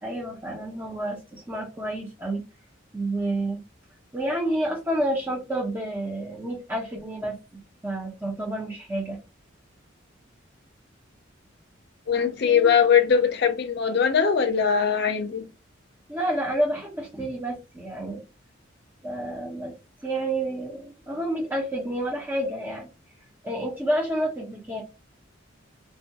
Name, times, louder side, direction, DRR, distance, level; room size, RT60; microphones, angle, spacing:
voice 1, 0.0-2.4 2.9-3.6 4.1-9.2 12.4-12.7 16.1-18.2 19.0-19.7 20.0-22.9 23.4-24.8, right 1 dB, 10° right, 0.5 m, -29 dB
voice 2, 12.1-15.5, left 7 dB, 55° left, 0.5 m, -21 dB
2.2 x 2.2 x 2.7 m
head